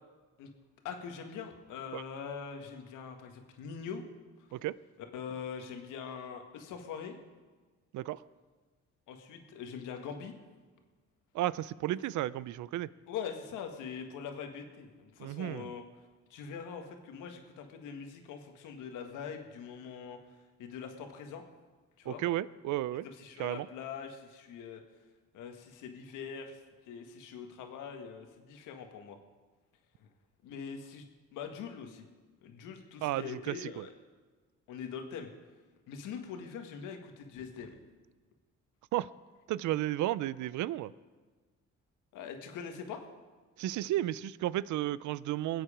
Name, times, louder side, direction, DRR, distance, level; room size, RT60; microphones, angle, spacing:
voice 1, 0.8-4.0 5.1-7.2 9.1-10.3 13.1-15.8 16.3-20.2 20.6-21.4 22.0-22.2 23.0-24.8 25.3-26.6 26.9-29.2 30.0-30.1 30.4-31.0 31.3-32.0 32.4-33.9 34.7-35.3 35.9-37.8 42.1-43.0, left 6 dB, 85° left, 4 dB, 1.7 m, -43 dB
voice 2, 11.3-12.9 15.2-15.7 22.1-23.1 23.4-23.7 33.0-33.9 38.9-39.1 39.5-40.9 43.6-45.6, right 14 dB, 75° right, 19 dB, 0.5 m, -33 dB
21.0 x 8.1 x 5.0 m, 1.4 s
supercardioid pair, 70°, 30 cm